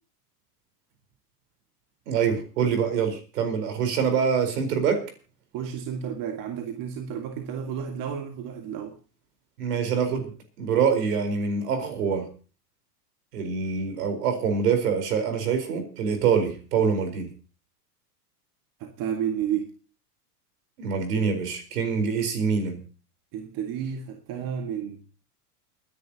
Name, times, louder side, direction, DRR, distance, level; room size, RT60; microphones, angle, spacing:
voice 1, 2.1-5.0 9.6-10.3 10.6-12.3 13.3-17.3 20.8-22.8, right 6 dB, 75° right, 4.6 m, -25 dB
voice 2, 5.5-9.0 18.8-19.7 23.3-25.0, right 8 dB, 45° right, 2.0 m, -31 dB
29.5 x 10.5 x 2.9 m
hypercardioid pair, 115°, 47 cm